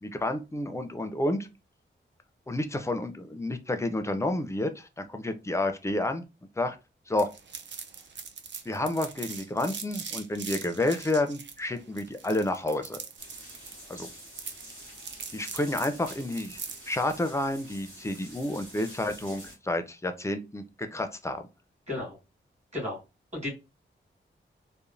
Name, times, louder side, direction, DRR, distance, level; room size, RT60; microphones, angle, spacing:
voice 1, 0.0-1.5 2.5-6.2 6.6-6.8 7.1-7.3 8.7-13.0 13.9-14.1 15.3-21.4, left 1 dB, 15° left, 0.4 m, -30 dB
sound 1, 7.2-16.9, right 6 dB, 65° right, 0.5 m, -41 dB
sound 2, 13.2-19.5, right 1 dB, 85° right, 1.2 m, -47 dB
voice 2, 21.9-22.2 22.7-23.0 23.3-23.5, left 2 dB, 35° right, 1.7 m, -33 dB
3.0 x 2.1 x 2.5 m
wide cardioid pair, 85°, 20 cm